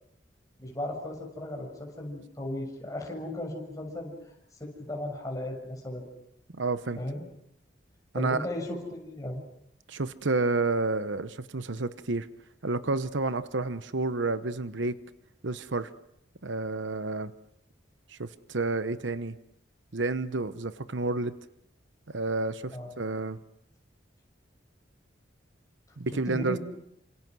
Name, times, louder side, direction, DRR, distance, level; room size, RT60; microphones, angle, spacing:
voice 1, 0.6-4.1 4.6-6.1 7.0-7.2 8.1-9.4 22.7-23.0 26.2-26.6, left 1 dB, 20° left, 0 dB, 6.7 m, -36 dB
voice 2, 6.5-7.0 8.1-8.5 9.9-12.3 12.6-15.0 15.4-15.9 16.4-17.3 18.1-19.4 19.9-21.3 22.1-23.4 26.0-26.6, right 3 dB, 70° right, 13 dB, 1.0 m, -30 dB
28.5 x 27.0 x 6.2 m, 0.77 s
head